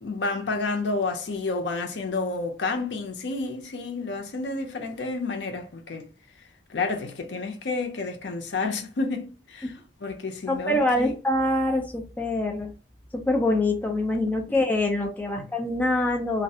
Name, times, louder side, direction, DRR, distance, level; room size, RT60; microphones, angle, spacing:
voice 1, 0.0-6.1 6.7-9.7 10.0-11.2 15.4-15.5, left 3 dB, 75° left, 0.5 m, -30 dB
voice 2, 10.5-12.7 13.1-16.4, left 1 dB, 10° left, 0.5 m, -25 dB
2.4 x 2.1 x 2.7 m
head